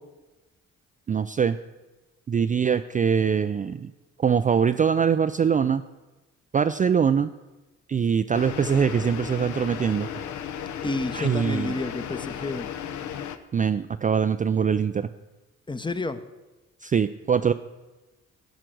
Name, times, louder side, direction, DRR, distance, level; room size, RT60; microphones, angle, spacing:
voice 1, 1.1-1.6 2.3-3.9 4.2-5.8 6.5-7.3 7.9-10.1 11.1-11.7 13.5-15.1 16.8-17.5, right 7 dB, 25° right, 9 dB, 0.4 m, -23 dB
sound 1, 8.3-13.4, left 9 dB, 70° left, 0.9 m, -35 dB
voice 2, 10.8-12.7 15.7-16.2, left 2 dB, 15° left, 11 dB, 0.8 m, -30 dB
14.0 x 5.0 x 7.7 m, 1.1 s
cardioid pair, 90°, 30 cm